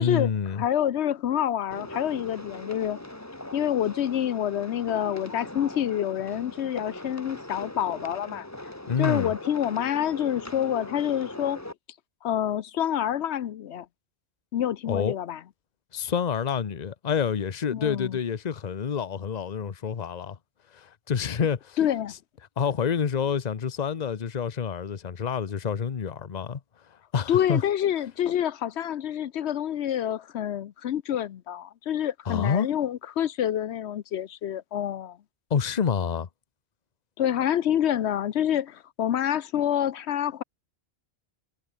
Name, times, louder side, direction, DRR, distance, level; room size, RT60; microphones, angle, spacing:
voice 1, 0.0-0.6 8.9-9.3 14.9-15.1 15.9-20.4 20.7-21.8 22.6-26.6 27.1-27.6 32.3-32.7 35.5-36.3, left 7 dB, 40° left, 1.0 m, -28 dB
voice 2, 0.6-3.0 3.5-8.5 9.0-11.6 12.2-13.9 14.5-15.4 17.7-18.2 21.8-22.1 27.3-35.2 37.2-40.4, left 10 dB, 85° left, 1.0 m, -27 dB
sound 1, 1.7-11.7, left 1 dB, 15° left, 1.8 m, -40 dB
omnidirectional pair, 1.1 m